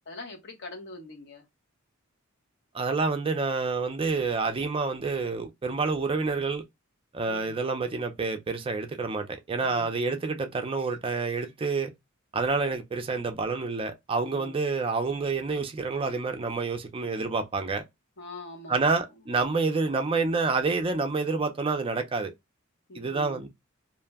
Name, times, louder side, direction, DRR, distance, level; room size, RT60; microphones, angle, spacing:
voice 1, 0.1-1.4 7.3-7.6 9.6-9.9 14.3-14.6 18.2-19.0 22.9-23.4, left 1 dB, 55° left, 0.9 m, -43 dB
voice 2, 2.7-6.6 7.1-11.9 12.3-17.8 18.7-22.3 22.9-23.5, right 4 dB, 25° right, 0.4 m, -28 dB
2.5 x 2.1 x 3.4 m
head